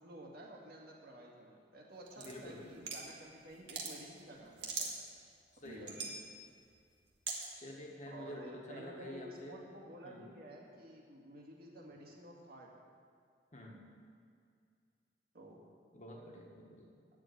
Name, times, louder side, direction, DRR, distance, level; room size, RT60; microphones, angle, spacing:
voice 1, 0.0-4.9 5.6-6.2 8.1-12.7 15.3-15.6, right 1 dB, 60° right, -1 dB, 2.1 m, -52 dB
sound 1, 2.1-3.1 3.5-3.9 4.3-5.2 5.6-6.2 7.3-7.5, right 5 dB, 85° right, 1.9 m, -40 dB
voice 2, 2.2-2.9 5.6-6.0 7.6-9.6 10.0-10.2 13.5-13.8 15.9-16.9, left 1 dB, 40° left, 0 dB, 1.5 m, -49 dB
9.4 x 7.5 x 9.1 m, 2.3 s
head